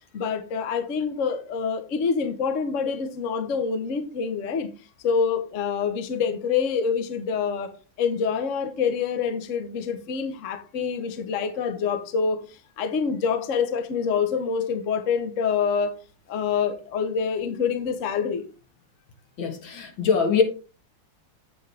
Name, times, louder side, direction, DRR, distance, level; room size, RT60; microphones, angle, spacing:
voice 1, 0.1-4.7 5.0-7.7 8.0-12.4 12.8-15.9 16.3-18.4, left 6 dB, 50° left, 1.2 m, -26 dB
voice 2, 19.4-20.4, left 5 dB, 80° left, 2.3 m, -22 dB
8.7 x 7.6 x 3.4 m
omnidirectional pair, 2.1 m